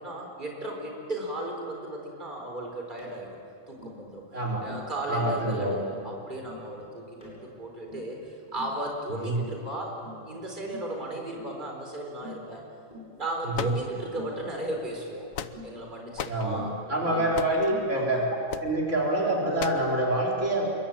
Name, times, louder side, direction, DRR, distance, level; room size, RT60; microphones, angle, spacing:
voice 1, 0.0-3.4 3.7-4.2 4.6-10.0 10.3-12.7 13.2-15.3 15.6-17.2 17.9-18.2, right 1 dB, 35° right, 1 dB, 4.5 m, -35 dB
Tap, 3.0-3.2 3.8-4.0 4.7-4.9 5.2-5.4 5.9-6.1 6.4-6.7 7.2-7.4 7.9-8.1 8.5-8.8 9.4-9.6 10.0-10.3 10.7-10.9 11.3-11.5 12.2-12.5 12.9-13.1 14.1-14.4 15.5-15.7 16.5-16.8 17.1-17.4 17.7-17.9, left 2 dB, 35° left, 8.3 m, -44 dB
voice 2, 4.3-4.7 5.1-5.8 9.1-9.4 13.5-13.7 16.3-18.2 18.6-20.7, right 1 dB, 65° right, -2 dB, 4.3 m, -26 dB
sound 1, 13.5-14.3 15.0-15.8 16.2-16.5 17.3-17.7 18.5-18.7 19.6-19.9, left 8 dB, 85° left, 1.3 m, -36 dB
27.0 x 23.0 x 8.8 m, 2.6 s
omnidirectional pair, 1.4 m